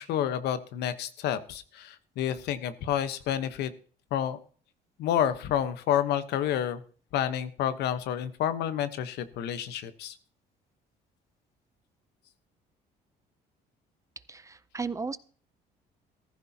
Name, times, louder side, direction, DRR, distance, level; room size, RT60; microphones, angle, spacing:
voice 1, 0.0-3.7 4.1-4.4 5.0-6.8 7.1-10.1, left 10 dB, 80° left, 12 dB, 1.1 m, -29 dB
voice 2, 14.3-15.2, right 4 dB, 20° right, 16 dB, 0.5 m, -35 dB
15.0 x 14.0 x 2.8 m, 0.43 s
cardioid pair, 110°, 17 cm